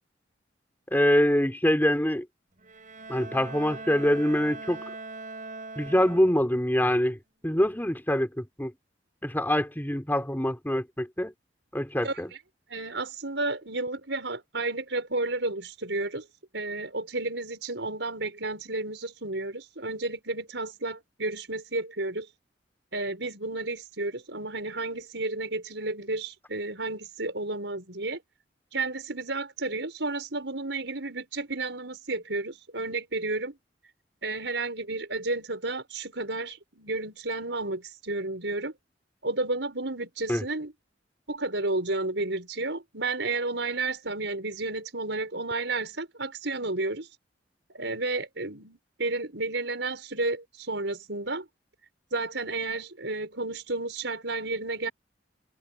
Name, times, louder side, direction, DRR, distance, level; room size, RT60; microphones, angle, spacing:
voice 1, 0.9-2.3 3.1-4.8 5.8-7.2 7.4-8.7 9.2-11.3 11.7-12.3 40.3-40.4, equal, 10° left, 4.0 m, -24 dB
Bowed string instrument, 2.6-6.7, right 3 dB, 45° right, 7.1 m, -41 dB
voice 2, 12.7-16.2 16.5-22.3 22.9-28.2 28.7-33.6 34.2-38.7 39.2-40.7 41.3-47.1 47.7-51.4 52.1-54.9, right 2 dB, 75° right, 6.4 m, -32 dB
head